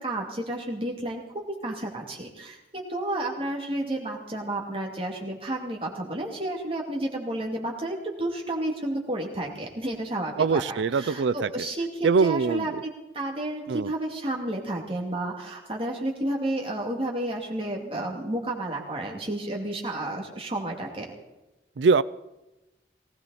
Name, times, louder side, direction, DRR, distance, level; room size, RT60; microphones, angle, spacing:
voice 1, 0.0-21.1, right 1 dB, 30° right, 0 dB, 2.5 m, -31 dB
voice 2, 10.4-11.7 12.0-12.8 13.7-13.9 21.8-22.0, right 4 dB, 85° right, 18 dB, 0.4 m, -23 dB
19.0 x 17.5 x 4.2 m, 1.0 s
head